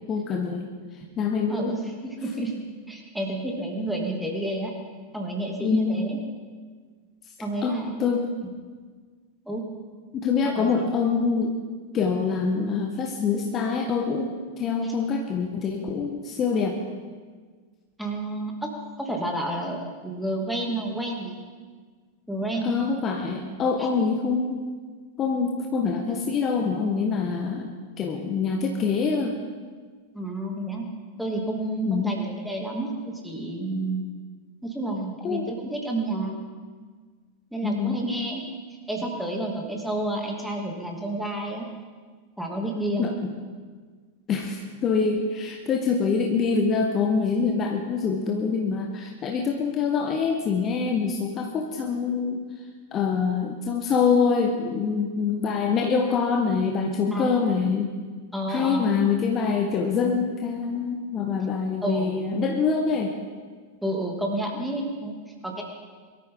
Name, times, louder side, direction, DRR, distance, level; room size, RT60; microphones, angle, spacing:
voice 1, 0.1-0.7 1.2-1.8 5.6-6.0 7.6-8.3 10.1-11.6 11.9-16.8 22.6-24.6 25.2-27.7 28.0-29.3 31.9-32.2 35.2-35.5 37.6-38.0 43.0-43.1 44.3-52.5 52.9-57.9 58.5-63.1, left 5 dB, 30° left, 3 dB, 1.3 m, -25 dB
voice 2, 1.5-2.6 2.9-4.7 5.1-6.2 7.4-8.0 9.4-9.6 10.4-11.0 14.8-14.9 18.0-18.7 19.0-21.4 22.3-22.7 23.8-23.9 30.1-30.9 31.2-34.0 34.6-36.3 37.5-38.4 38.9-41.7 42.4-43.1 57.1-57.5 58.3-58.9 61.8-62.1 63.8-65.1 65.4-65.6, right 1 dB, ahead, 0 dB, 2.7 m, -30 dB
23.0 x 13.5 x 3.9 m, 1.5 s
figure-of-eight pair, 90°, 0 cm